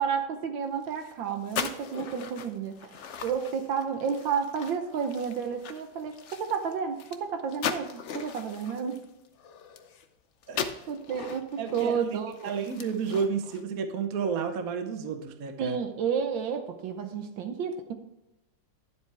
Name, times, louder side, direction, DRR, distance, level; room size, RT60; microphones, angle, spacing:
voice 1, 0.0-2.9 3.2-9.0 10.9-12.5 15.6-17.9, right 6 dB, 75° right, 7 dB, 1.6 m, -31 dB
sound 1, 0.8-10.1 10.4-13.6, left 7 dB, 70° left, 0.6 m, -39 dB
voice 2, 11.6-12.2 12.4-15.8, right 6 dB, 60° right, 7 dB, 1.1 m, -31 dB
11.0 x 7.6 x 3.4 m, 0.93 s
omnidirectional pair, 2.2 m